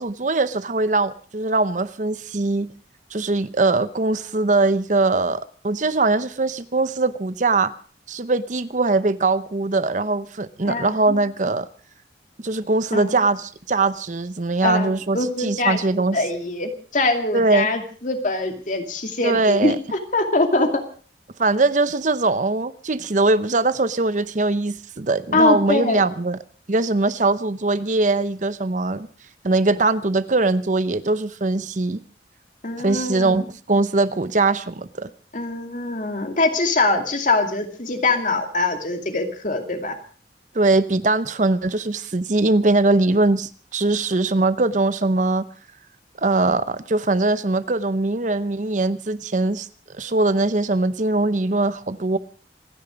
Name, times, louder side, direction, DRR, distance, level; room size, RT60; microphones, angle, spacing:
voice 1, 0.0-2.7 3.1-7.7 8.1-11.7 12.4-16.2 17.3-17.7 19.2-19.8 21.4-26.4 26.7-29.1 29.4-32.0 32.8-35.1 40.5-45.5 46.2-49.7 50.0-52.2, right 3 dB, 45° right, 14 dB, 0.8 m, -21 dB
voice 2, 10.7-11.2 12.9-13.1 14.6-20.8 25.3-26.1 32.6-33.4 35.3-39.9, left 2 dB, 45° left, 5 dB, 2.5 m, -23 dB
27.0 x 10.5 x 5.1 m, 0.41 s
head